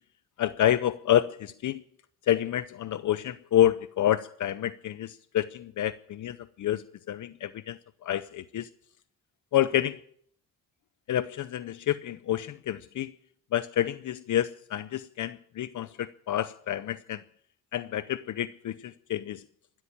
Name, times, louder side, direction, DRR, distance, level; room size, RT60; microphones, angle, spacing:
voice 1, 0.4-1.8 2.3-8.7 9.5-10.0 11.1-13.1 13.5-17.2 17.7-19.4, left 11 dB, 65° left, 0.7 m, -28 dB
15.0 x 13.0 x 7.1 m
cardioid pair, 85°, 33 cm